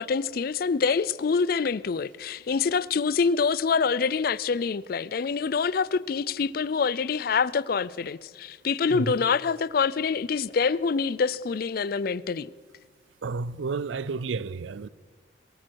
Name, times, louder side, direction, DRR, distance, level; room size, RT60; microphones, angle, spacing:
voice 1, 0.0-12.5, left 5 dB, 55° left, 0.4 m, -26 dB
voice 2, 8.9-9.3 13.2-14.9, right 4 dB, 90° right, 0.5 m, -31 dB
22.0 x 14.0 x 4.6 m
head